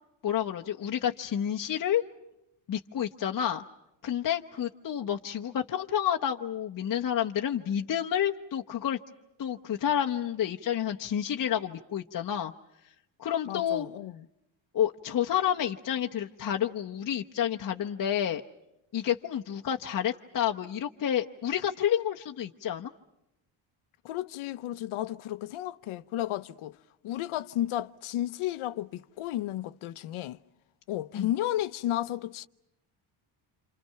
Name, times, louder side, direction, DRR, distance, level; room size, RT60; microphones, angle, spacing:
voice 1, 0.2-2.0 2.7-3.6 4.0-9.0 9.4-12.5 13.2-13.9 14.7-18.4 18.9-22.9 31.1-31.3, left 10 dB, 40° left, 0.9 m, -29 dB
voice 2, 13.4-14.2 24.0-26.8 27.0-30.4 30.9-32.5, left 13 dB, 80° left, 0.9 m, -33 dB
28.0 x 28.0 x 5.7 m
cardioid pair, 140°, 49 cm